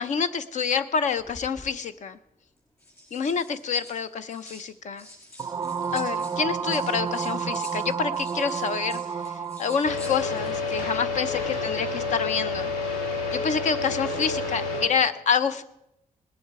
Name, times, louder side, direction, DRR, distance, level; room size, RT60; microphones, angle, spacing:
voice 1, 0.0-2.2 3.1-5.1 5.9-12.7 13.3-15.6, left 6 dB, 60° left, 12 dB, 0.6 m, -27 dB
sound 1, 1.2-1.7 2.6-4.7 5.0-10.8 11.1-11.4, left 2 dB, 20° left, 7.1 m, -47 dB
sound 2, 5.4-9.9, right 6 dB, 25° right, 0.4 m, -30 dB
sound 3, 9.8-14.9, left 3 dB, 80° left, 3.9 m, -29 dB
19.5 x 10.5 x 4.7 m, 0.84 s
wide cardioid pair, 165°, 14 cm